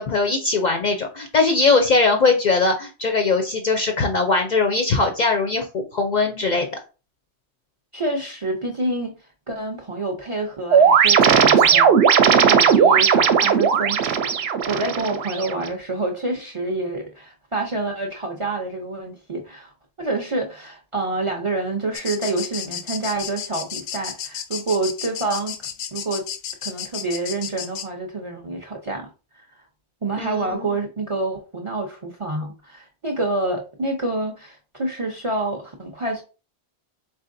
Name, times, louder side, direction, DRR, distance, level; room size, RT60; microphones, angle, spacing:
voice 1, 0.0-6.7 30.2-30.8, left 3 dB, 55° left, 0.5 m, -20 dB
voice 2, 7.9-9.1 9.5-19.7 20.0-26.2 26.6-29.1 29.4-29.5 30.0-36.2, right 2 dB, 40° right, 0.5 m, -27 dB
sound 1, 10.7-15.7, right 7 dB, 70° right, 0.8 m, -16 dB
sound 2, 21.9-27.9, left 8 dB, 85° left, 0.9 m, -32 dB
4.1 x 3.6 x 2.5 m
omnidirectional pair, 1.2 m